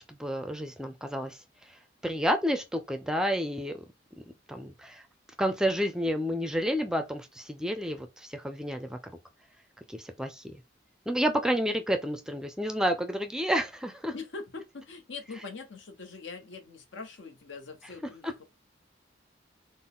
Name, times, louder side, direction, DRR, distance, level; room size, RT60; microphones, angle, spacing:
voice 1, 0.1-1.4 2.0-3.8 4.5-5.0 5.4-9.1 9.9-10.6 11.1-14.1 18.2-18.3, equal, 5° right, 0.4 m, -30 dB
voice 2, 14.1-18.5, left 4 dB, 80° left, 0.9 m, -43 dB
3.9 x 2.1 x 3.7 m
head